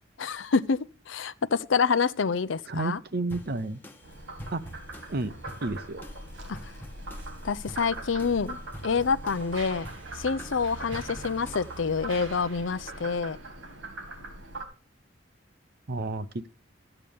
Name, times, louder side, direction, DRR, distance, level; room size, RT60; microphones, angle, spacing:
voice 1, 0.2-0.8 1.1-3.0 6.5-6.6 7.4-8.6 8.8-9.9 10.1-13.4, left 5 dB, 75° left, 0.6 m, -27 dB
voice 2, 2.7-3.8 4.5-4.6 5.1-5.3 5.6-6.0 15.9-16.5, right 2 dB, 55° right, 0.8 m, -31 dB
sound 1, 3.3-12.0, equal, 10° left, 1.0 m, -47 dB
Frog, 4.0-14.6, right 2 dB, 70° right, 2.3 m, -41 dB
Mechanisms, 8.0-8.1 8.8-14.5, right 3 dB, 85° right, 2.6 m, -49 dB
13.5 x 9.0 x 3.6 m
head